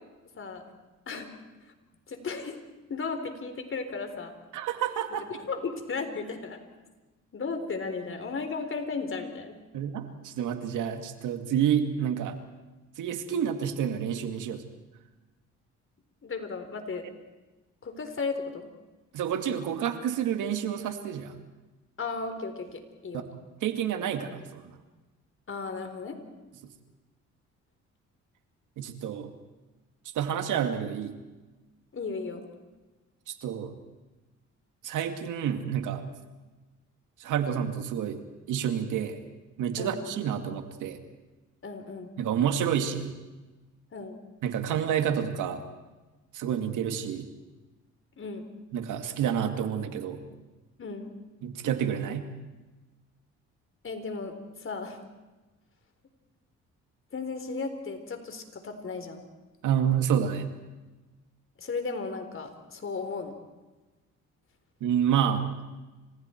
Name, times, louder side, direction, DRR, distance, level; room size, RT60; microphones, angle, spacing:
voice 1, 0.3-0.7 1.1-1.3 2.1-2.6 2.9-4.3 5.4-6.6 7.3-9.6 16.2-17.0 17.8-18.7 22.0-23.3 25.5-26.2 31.9-32.4 39.8-40.1 41.6-42.1 43.9-44.2 48.2-48.4 50.8-51.2 53.8-55.0 57.1-59.2 61.6-63.4, left 4 dB, 45° left, 7 dB, 4.1 m, -35 dB
voice 2, 4.5-5.3 9.7-12.4 13.0-14.6 19.1-21.3 23.6-24.8 28.8-29.3 30.1-31.2 33.3-33.7 34.8-36.0 37.2-38.2 38.5-39.2 39.6-41.0 42.2-43.1 44.4-45.6 46.3-47.3 48.7-50.2 51.4-52.3 59.6-60.5 64.8-65.5, right 8 dB, 85° right, 7 dB, 2.3 m, -29 dB
30.0 x 26.5 x 4.6 m, 1.2 s
cardioid pair, 90°, 30 cm